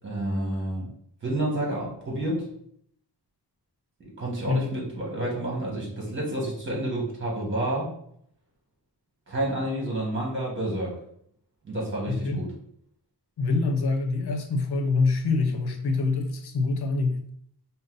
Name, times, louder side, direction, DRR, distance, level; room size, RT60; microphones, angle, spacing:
voice 1, 0.0-0.9 1.2-2.5 4.0-7.9 9.3-11.0 11.6-12.5, right 1 dB, 30° right, -3 dB, 1.5 m, -29 dB
voice 2, 12.1-12.4 13.4-17.2, left 3 dB, 75° left, 5 dB, 0.8 m, -25 dB
5.3 x 2.1 x 3.9 m, 0.68 s
wide cardioid pair, 160°, 39 cm